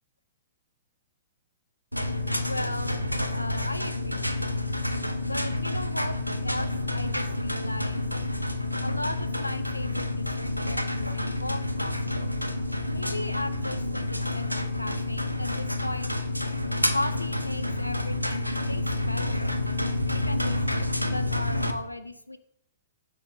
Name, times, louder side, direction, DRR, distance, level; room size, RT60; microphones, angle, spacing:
sound 1, 1.9-21.7, left 2 dB, 90° right, 0.3 m, -29 dB
voice 1, 2.4-3.0 3.4-4.5 5.2-6.2 6.4-8.0 8.8-11.9 12.9-16.1 16.9-19.8 20.1-22.4, left 1 dB, 85° left, 9 dB, 0.3 m, -36 dB
5.9 x 2.1 x 3.3 m, 0.75 s
figure-of-eight pair, 110°, 0 cm